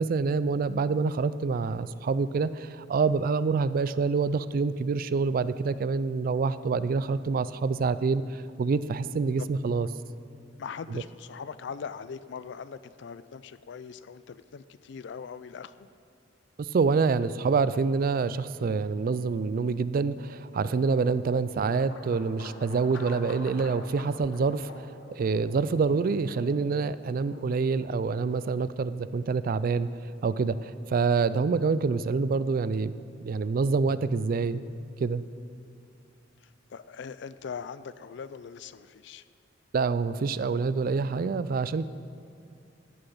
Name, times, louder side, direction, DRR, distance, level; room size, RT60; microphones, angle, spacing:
voice 1, 0.0-9.9 16.6-24.9 25.1-29.9 30.2-32.9 33.2-34.6 35.0-35.2 39.7-41.9, right 4 dB, 50° right, 15 dB, 0.3 m, -26 dB
voice 2, 10.6-15.9 36.4-39.2, left 6 dB, 65° left, 15 dB, 0.4 m, -41 dB
sound 1, 19.6-33.5, left 2 dB, 90° left, 1.1 m, -49 dB
14.5 x 6.8 x 5.5 m, 2.6 s
head